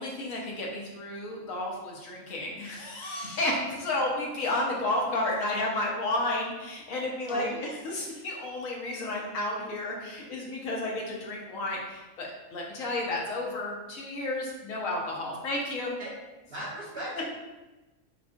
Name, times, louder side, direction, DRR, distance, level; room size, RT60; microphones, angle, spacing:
voice 1, 0.0-15.9, left 1 dB, 80° left, -2 dB, 1.3 m, -32 dB
voice 2, 7.3-7.7 16.0-16.1 16.5-17.2, right 1 dB, 45° right, -8 dB, 1.6 m, -37 dB
4.6 x 3.7 x 2.5 m, 1.1 s
omnidirectional pair, 1.4 m